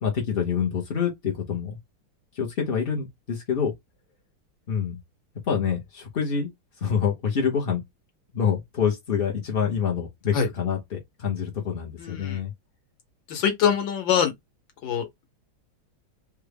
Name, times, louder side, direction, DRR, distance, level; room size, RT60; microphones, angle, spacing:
voice 1, 0.0-1.8 2.3-3.7 4.7-5.0 5.5-6.5 6.8-7.8 8.3-12.5, left 7 dB, 60° left, 0.5 m, -26 dB
voice 2, 12.0-12.4 13.3-14.3 14.8-15.0, left 8 dB, 80° left, 1.5 m, -23 dB
3.5 x 2.2 x 3.3 m
omnidirectional pair, 2.0 m